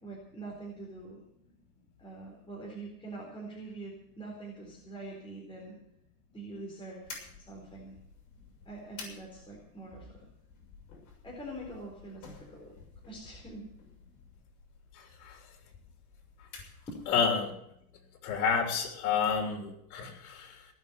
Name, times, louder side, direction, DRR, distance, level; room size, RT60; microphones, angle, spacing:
voice 1, 0.0-1.2 2.0-5.8 6.3-7.9 8.7-10.3 11.2-12.8 13.1-13.7 16.9-17.0, right 2 dB, 10° left, -3 dB, 4.1 m, -44 dB
sound 1, 7.0-17.4, left 4 dB, 45° left, 6.8 m, -52 dB
voice 2, 14.9-15.4 17.1-17.5 18.2-20.7, left 6 dB, 75° left, 2 dB, 3.5 m, -30 dB
18.5 x 6.6 x 9.4 m, 0.78 s
supercardioid pair, 135°, 43 cm